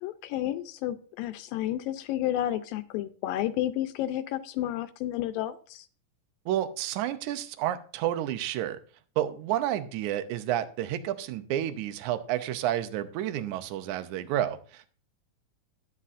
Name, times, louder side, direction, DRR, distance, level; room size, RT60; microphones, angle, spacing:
voice 1, 0.0-5.9, left 13 dB, 85° left, 10 dB, 2.3 m, -31 dB
voice 2, 6.5-8.8 9.2-14.9, right 12 dB, 75° right, 11 dB, 1.9 m, -30 dB
12.5 x 9.8 x 2.5 m, 0.42 s
omnidirectional pair, 4.0 m